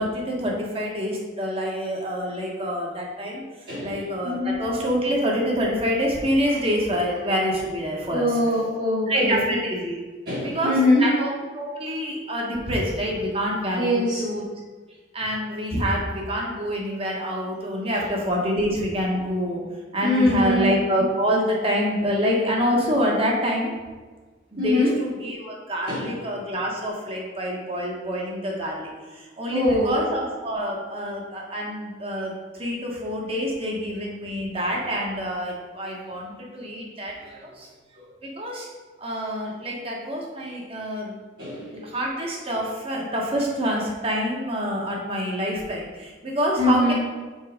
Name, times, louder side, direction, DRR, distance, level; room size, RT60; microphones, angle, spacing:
voice 1, 0.0-3.4 3.8-8.3 9.1-10.0 10.4-10.7 11.0-14.4 15.1-19.6 19.9-23.7 24.5-32.3 32.6-37.7 37.9-38.0 38.4-38.7 39.0-41.1 41.7-46.9, equal, 30° right, -2 dB, 1.3 m, -26 dB
voice 2, 3.7-4.6 7.9-9.4 10.3-11.1 13.8-14.2 17.9-18.0 20.0-20.7 24.6-24.9 25.9-26.2 29.5-29.9 41.4-41.8 46.6-46.9, left 1 dB, 55° right, -12 dB, 2.1 m, -23 dB
5.5 x 4.6 x 5.1 m, 1.3 s
head